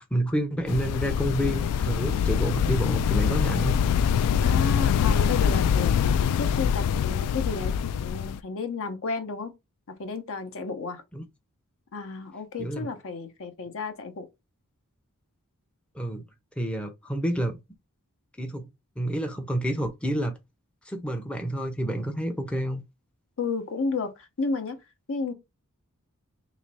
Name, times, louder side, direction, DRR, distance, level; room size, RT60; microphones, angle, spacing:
voice 1, 0.0-3.7 11.1-11.2 12.6-12.9 15.9-16.2 16.6-17.6 18.4-18.7 19.0-20.4 20.9-22.8, right 1 dB, 5° left, 0.5 m, -29 dB
sound 1, 0.7-8.4, left 8 dB, 85° left, 0.3 m, -24 dB
voice 2, 4.4-7.7 8.0-9.5 10.0-11.0 11.9-14.3 23.4-24.1 24.4-24.8 25.1-25.3, left 4 dB, 65° left, 0.8 m, -32 dB
3.2 x 3.0 x 4.0 m
head